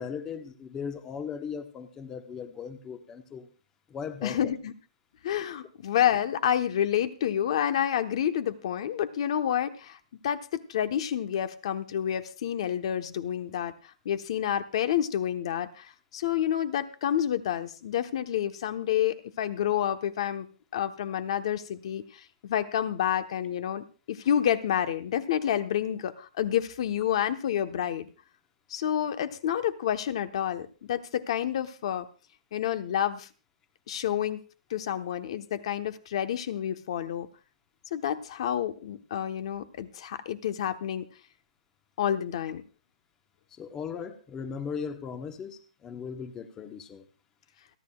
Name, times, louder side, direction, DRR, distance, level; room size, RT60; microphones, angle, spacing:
voice 1, 0.0-3.5 3.9-4.4 43.6-47.1, left 6 dB, 15° left, 8 dB, 1.0 m, -38 dB
voice 2, 4.2-4.7 5.2-10.0 10.2-20.5 20.7-28.1 28.7-32.1 32.5-33.3 33.9-34.4 34.7-37.3 37.9-41.1 42.0-42.6, left 10 dB, 50° left, 10 dB, 1.0 m, -29 dB
29.0 x 10.5 x 2.3 m, 0.35 s
hypercardioid pair, 160°, 4 cm